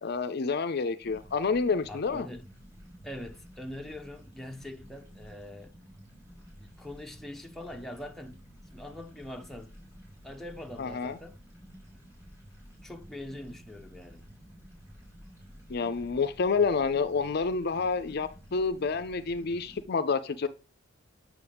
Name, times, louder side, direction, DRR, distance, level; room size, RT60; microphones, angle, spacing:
voice 1, 0.0-2.3 10.8-11.2 15.7-20.5, left 4 dB, 55° left, 0.5 m, -28 dB
sound 1, 1.0-19.8, equal, 15° right, 3.8 m, -52 dB
voice 2, 1.9-2.5 3.0-5.7 6.6-8.4 8.7-9.7 10.2-11.4 12.8-14.2, left 1 dB, ahead, 0.7 m, -43 dB
8.5 x 6.3 x 3.4 m
head